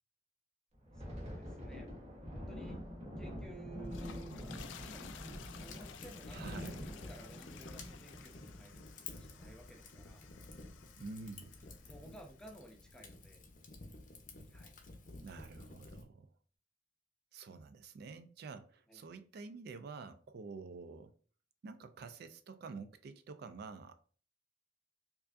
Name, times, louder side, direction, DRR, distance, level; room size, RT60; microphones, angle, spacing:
Thunder, 0.7-9.8 10.1-10.4 10.7-11.0 11.6-12.1, equal, 35° right, 1.0 m, -46 dB
voice 1, 0.9-2.0 2.3-2.8 3.2-4.4 4.8-10.3 11.9-13.4 14.5-14.8 18.9-19.0, right 1 dB, 5° left, 0.6 m, -55 dB
sound 1, 3.7-12.1, left 8 dB, 80° left, 0.4 m, -55 dB
Fire, 5.4-16.0, left 3 dB, 45° left, 0.7 m, -52 dB
voice 2, 6.3-6.8 11.0-11.5 15.2-16.3 17.3-21.1 21.6-23.9, right 4 dB, 60° right, 0.3 m, -48 dB
4.7 x 2.6 x 2.5 m
head